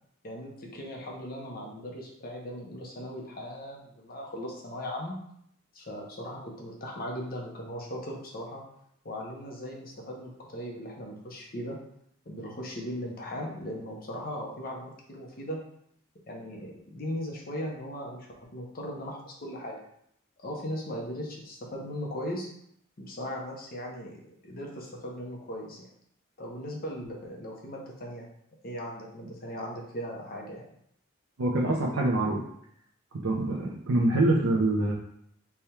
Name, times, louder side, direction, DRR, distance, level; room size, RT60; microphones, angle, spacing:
voice 1, 0.2-5.2 5.7-8.6 9.0-11.8 12.3-15.6 16.3-19.8 20.4-22.5 23.0-25.9 26.4-28.3 28.6-30.6, equal, 45° left, -1 dB, 0.8 m, -38 dB
voice 2, 31.4-32.4 33.2-34.9, right 2 dB, 85° right, -3 dB, 0.6 m, -25 dB
3.4 x 2.3 x 4.3 m, 0.71 s
head